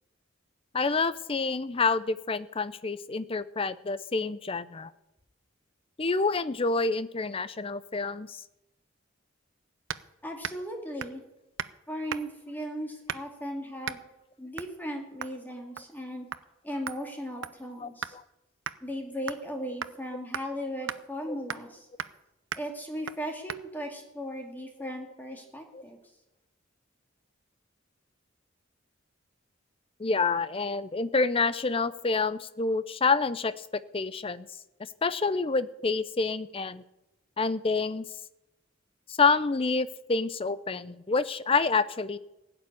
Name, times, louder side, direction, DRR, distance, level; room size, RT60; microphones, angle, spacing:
voice 1, 0.7-4.9 6.0-8.4 17.8-18.2 25.7-25.8 30.0-33.7 33.9-34.5 35.0-36.8 37.4-38.0 39.1-42.2, left 4 dB, 30° left, 15 dB, 0.6 m, -28 dB
sound 1, 9.9-10.1 10.4-10.7 11.0-11.2 11.6-11.8 12.1-12.4 13.1-13.4 13.8-14.0 14.6-14.8 15.2-15.4 15.8-16.0 16.3-16.4 16.9-18.2 18.7-18.8 19.3-19.5 19.8-20.0 20.3-20.5 20.9-21.0 21.5-21.7 22.0-22.2 22.5-22.7 23.1-23.2 23.5-23.6, right 8 dB, 75° right, 0.6 m, -37 dB
voice 2, 10.2-11.2 11.9-14.0 14.4-16.3 16.6-18.2 18.8-21.9 22.6-26.0, equal, 10° left, 1 dB, 2.4 m, -37 dB
16.0 x 7.0 x 9.7 m, 0.95 s
head